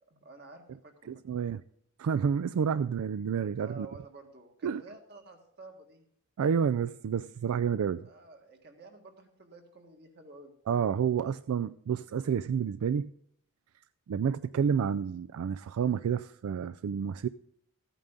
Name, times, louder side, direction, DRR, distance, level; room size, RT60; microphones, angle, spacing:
voice 1, 0.0-1.4 3.6-6.0 8.0-10.5, right 3 dB, 50° right, 1.8 m, -51 dB
voice 2, 1.1-1.6 2.0-3.9 4.6-4.8 6.4-8.1 10.7-13.1 14.1-17.3, right 7 dB, 85° right, 0.3 m, -29 dB
14.0 x 9.0 x 3.8 m
head